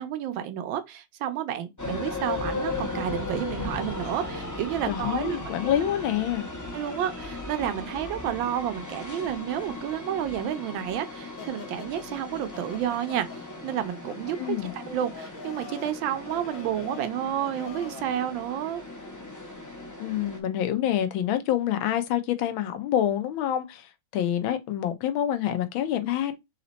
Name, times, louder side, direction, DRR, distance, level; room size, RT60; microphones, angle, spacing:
voice 1, 0.0-5.4 6.7-13.3 13.6-18.8, right 10 dB, 75° right, 1.3 m, -30 dB
sound 1, 1.8-20.4, left 2 dB, 20° left, 0.5 m, -37 dB
voice 2, 4.9-6.5 14.4-14.7 20.0-26.4, left 11 dB, 80° left, 1.4 m, -27 dB
sound 2, 11.4-18.2, left 5 dB, 55° left, 0.9 m, -45 dB
4.1 x 2.8 x 3.9 m
omnidirectional pair, 2.2 m